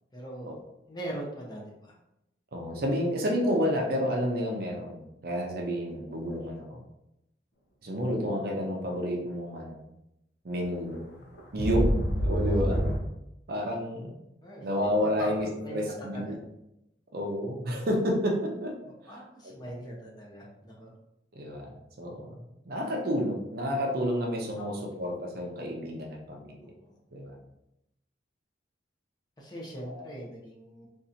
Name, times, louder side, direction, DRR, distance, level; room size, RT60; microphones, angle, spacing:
voice 1, 0.1-0.5 0.9-1.9 5.9-6.3 12.4-12.7 14.4-14.6 15.0-15.3 15.6-16.4 18.8-20.9 24.6-24.8 26.6-27.0 29.4-30.9, right 1 dB, 20° left, -4 dB, 0.8 m, -41 dB
voice 2, 2.5-6.8 7.8-9.8 10.4-11.0 11.5-12.8 13.5-14.1 14.6-16.3 17.1-18.7 19.0-19.2 21.3-22.3 22.7-26.7 27.1-27.4 29.8-30.1, equal, 55° right, 0 dB, 0.6 m, -30 dB
sound 1, 10.6-10.7 11.1-13.0, equal, 65° left, 0.7 m, -26 dB
3.8 x 2.6 x 2.7 m, 0.86 s
head